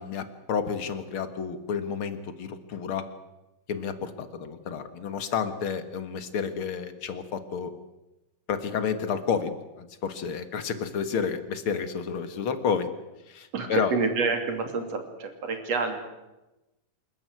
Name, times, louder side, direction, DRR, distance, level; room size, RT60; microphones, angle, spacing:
voice 1, 0.0-3.1 3.7-7.7 8.5-12.9 13.3-13.9, left 6 dB, 50° left, 10 dB, 1.9 m, -30 dB
voice 2, 13.5-16.0, right 4 dB, 50° right, 6 dB, 3.7 m, -28 dB
27.0 x 14.0 x 9.5 m, 1.0 s
omnidirectional pair, 3.8 m